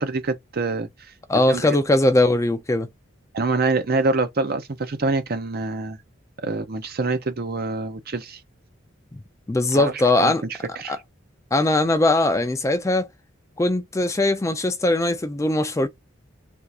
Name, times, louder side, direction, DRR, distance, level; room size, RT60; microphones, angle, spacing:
voice 1, 0.0-0.9 1.5-1.6 3.3-6.0 6.4-8.4 9.7-9.9 10.2-10.3 10.8-11.0, right 3 dB, 50° right, 0.6 m, -25 dB
voice 2, 1.3-2.9 9.1-9.2 9.5-10.4 10.9-11.0 11.5-13.1 13.6-15.9, left 2 dB, 15° left, 0.4 m, -20 dB
3.5 x 2.4 x 2.7 m
head